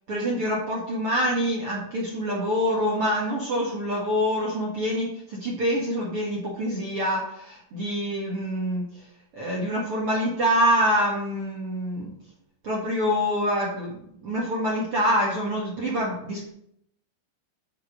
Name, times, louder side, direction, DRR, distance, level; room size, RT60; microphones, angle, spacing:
voice 1, 0.1-9.0 9.3-12.1 12.6-14.0 14.2-16.5, equal, 80° right, -3 dB, 1.2 m, -26 dB
10.5 x 5.1 x 6.5 m, 0.72 s
omnidirectional pair, 5.7 m